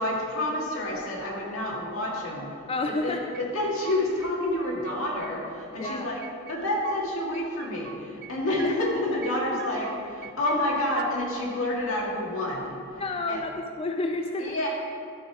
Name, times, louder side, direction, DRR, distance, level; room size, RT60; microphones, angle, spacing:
voice 1, 0.0-6.2 6.5-12.8 13.3-13.4 14.4-14.7, left 1 dB, 85° left, -3 dB, 2.1 m, -29 dB
voice 2, 2.7-3.3 5.8-6.1 8.6-8.7 13.0-14.6, left 2 dB, 30° left, 4 dB, 0.4 m, -30 dB
sound 1, 3.3-4.3 4.6-5.3 5.6-7.0 7.3-8.3 8.6-9.3 9.6-11.1, right 10 dB, 55° right, 0.4 m, -43 dB
12.5 x 5.0 x 4.9 m, 2.4 s
head